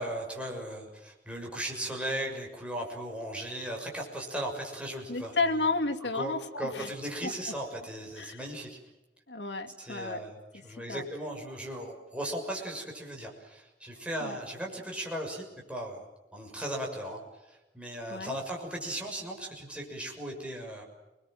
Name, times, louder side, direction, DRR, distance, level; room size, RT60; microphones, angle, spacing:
voice 1, 0.0-5.3 6.1-8.8 9.8-16.0 16.3-17.2 17.5-20.8, right 1 dB, 5° right, -1 dB, 6.5 m, -37 dB
voice 2, 5.1-6.9 7.2-7.5 8.2-8.5 9.3-10.2 10.5-11.1 14.2-14.4 18.1-18.4, left 3 dB, 75° left, 3 dB, 2.7 m, -32 dB
30.0 x 21.5 x 7.7 m, 1.0 s
head